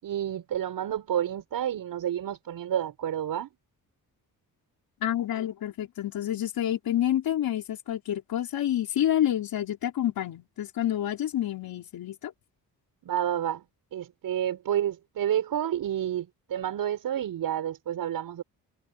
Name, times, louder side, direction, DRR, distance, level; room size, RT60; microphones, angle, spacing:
voice 1, 0.0-3.5 13.0-13.6 13.9-18.4, right 10 dB, 65° right, 6.4 m, -30 dB
voice 2, 5.0-12.3, left 11 dB, 70° left, 4.6 m, -28 dB
cardioid pair, 155°, 37 cm